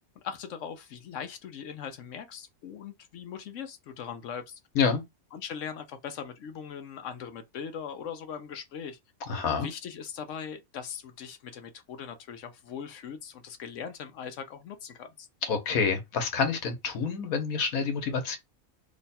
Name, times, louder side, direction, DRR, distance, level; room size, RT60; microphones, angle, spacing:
voice 1, 0.2-4.6 5.3-9.0 9.5-15.3, left 7 dB, 70° left, 0.9 m, -40 dB
voice 2, 9.3-9.7 15.5-18.4, left 5 dB, 90° left, 1.4 m, -27 dB
3.1 x 2.2 x 4.0 m
omnidirectional pair, 1.5 m